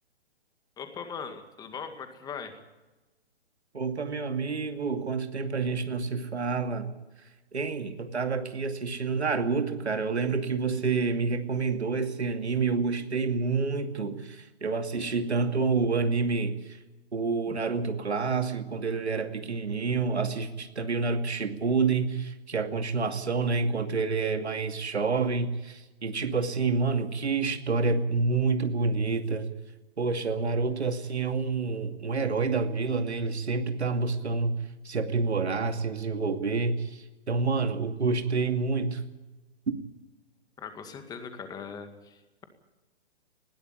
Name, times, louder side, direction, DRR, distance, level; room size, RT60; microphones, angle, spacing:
voice 1, 0.8-2.6 17.5-17.6 40.6-42.4, left 6 dB, 10° left, 7 dB, 2.1 m, -40 dB
voice 2, 3.7-6.9 7.5-16.8 17.1-29.5 30.0-34.6 34.8-39.0, right 4 dB, 90° right, 6 dB, 2.5 m, -28 dB
20.0 x 15.0 x 9.8 m, 1.1 s
hypercardioid pair, 145°, 32 cm